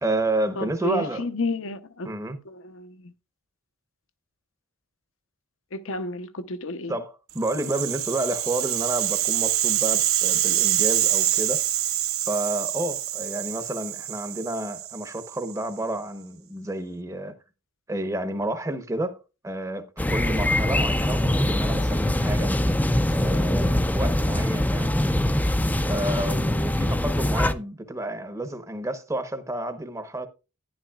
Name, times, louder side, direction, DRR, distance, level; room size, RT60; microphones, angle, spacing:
voice 1, 0.0-1.2 2.0-2.4 6.9-11.6 12.3-17.3 17.9-19.2 19.4-22.5 23.1-25.0 25.8-30.3, right 1 dB, 15° right, 0.9 m, -30 dB
voice 2, 0.6-2.1 2.5-3.1 5.7-7.0, left 2 dB, 65° left, 0.8 m, -31 dB
Rattle (instrument), 7.4-15.6, right 12 dB, 75° right, 1.1 m, -26 dB
sound 1, 20.0-27.5, left 1 dB, 10° left, 0.5 m, -23 dB
11.5 x 10.5 x 2.4 m
head